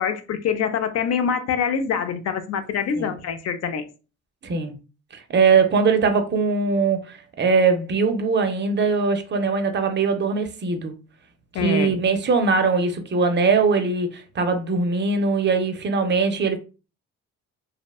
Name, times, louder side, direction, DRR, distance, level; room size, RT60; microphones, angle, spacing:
voice 1, 0.0-3.9 11.5-12.0, left 7 dB, 55° left, 0.5 m, -25 dB
voice 2, 4.4-4.7 5.1-10.9 11.5-16.6, right 4 dB, 35° right, 0.5 m, -21 dB
2.7 x 2.1 x 2.3 m
cardioid pair, 90°, 30 cm